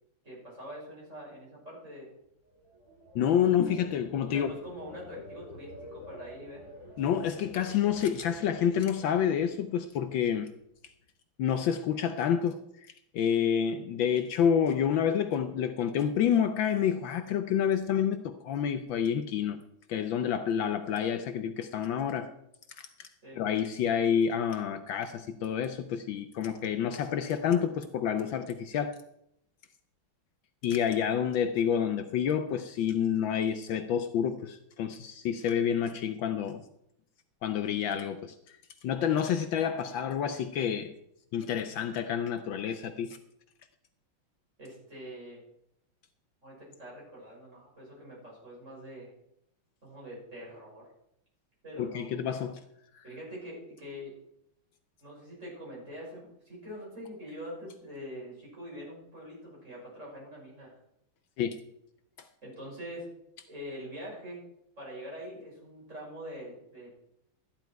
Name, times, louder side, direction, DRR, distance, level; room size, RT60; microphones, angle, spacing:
voice 1, 0.2-2.1 4.3-6.7 23.2-23.4 44.6-45.4 46.4-49.1 49.8-50.9 51.6-52.2 53.0-54.1 55.0-60.7 62.4-63.1 63.5-64.4 64.8-66.9, equal, 35° right, 6.4 m, -44 dB
sound 1, 2.4-9.6 10.0-10.4, left 1 dB, 30° left, 3.4 m, -49 dB
voice 2, 3.1-4.5 7.0-10.5 11.4-12.6 13.1-19.6 19.9-22.3 22.8-23.1 23.3-29.0 30.6-36.6 37.4-38.6 38.8-40.9 41.3-43.2 51.8-52.6 52.9-53.0 61.4-61.6, left 8 dB, 70° left, 1.4 m, -28 dB
13.5 x 10.5 x 4.6 m
omnidirectional pair, 2.3 m